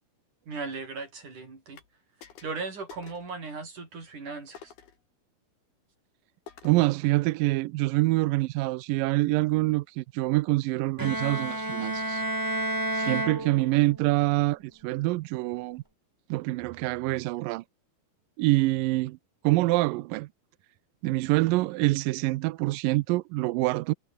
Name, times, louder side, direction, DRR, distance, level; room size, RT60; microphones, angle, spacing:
voice 1, 0.5-1.8 2.4-4.7, right 4 dB, 50° right, 8.2 m, -37 dB
sound 1, 1.8-1.9 2.2-2.6 2.9-3.3 4.6-5.0 6.5-6.9, left 7 dB, 75° left, 5.3 m, -49 dB
voice 2, 6.6-12.2 12.9-15.8 16.3-17.6 18.4-19.2 19.4-20.3 21.0-23.9, right 19 dB, 80° right, 2.0 m, -25 dB
Bowed string instrument, 11.0-14.1, right 1 dB, 10° right, 1.2 m, -31 dB
omnidirectional pair, 4.5 m